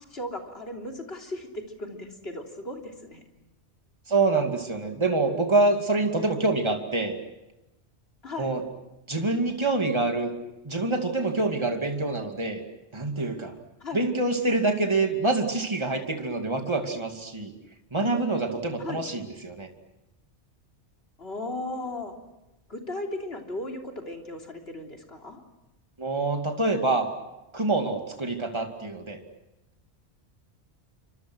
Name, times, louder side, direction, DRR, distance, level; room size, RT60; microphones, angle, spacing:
voice 1, 0.1-3.2 8.2-8.5 13.8-14.1 18.8-19.0 21.2-22.1 22.7-25.4, left 2 dB, 60° left, 2 dB, 3.6 m, -36 dB
voice 2, 4.1-7.2 8.4-8.6 9.1-10.3 10.6-12.6 12.9-13.5 13.9-17.5 17.9-19.7 26.0-27.1 27.5-29.2, right 3 dB, 25° right, 4 dB, 2.5 m, -26 dB
29.0 x 25.0 x 6.2 m, 0.96 s
omnidirectional pair, 1.2 m